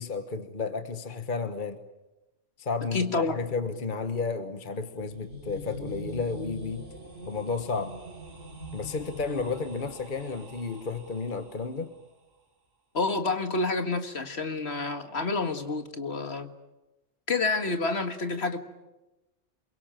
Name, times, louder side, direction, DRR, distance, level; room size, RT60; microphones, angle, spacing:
voice 1, 0.0-1.8 2.6-6.9 7.3-8.0 8.7-11.9, left 4 dB, 40° left, 9 dB, 1.4 m, -32 dB
voice 2, 2.9-3.4 12.9-16.5 17.3-18.6, left 3 dB, 60° left, 7 dB, 2.1 m, -28 dB
sound 1, 4.9-11.8, equal, 65° right, 3.7 m, -43 dB
28.0 x 23.0 x 9.0 m, 1.0 s
omnidirectional pair, 1.3 m